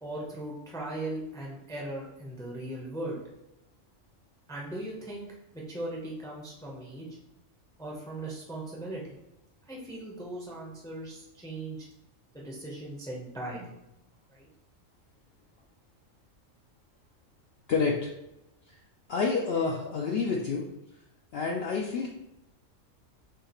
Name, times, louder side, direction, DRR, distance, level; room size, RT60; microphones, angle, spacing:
voice 1, 0.0-3.2 4.5-5.3 5.7-7.1 7.8-9.1 9.7-11.8 12.3-13.7 14.3-14.5, right 1 dB, 5° left, -3 dB, 0.5 m, -38 dB
voice 2, 17.7-18.1 19.1-20.6 21.3-22.1, left 4 dB, 65° left, -1 dB, 0.7 m, -28 dB
6.3 x 2.4 x 2.9 m, 0.91 s
omnidirectional pair, 1.4 m